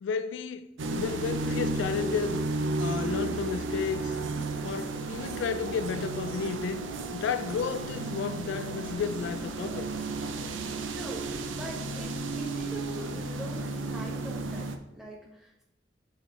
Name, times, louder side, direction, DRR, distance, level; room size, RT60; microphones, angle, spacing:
voice 1, 0.0-2.4 2.8-4.2 4.6-6.8 7.1-9.9, left 6 dB, 75° left, 0.3 m, -32 dB
sound 1, 0.8-14.8, right 2 dB, 85° right, 0.5 m, -33 dB
voice 2, 10.9-11.3 11.5-15.6, right 1 dB, ahead, 1.4 m, -42 dB
8.1 x 3.2 x 3.8 m
head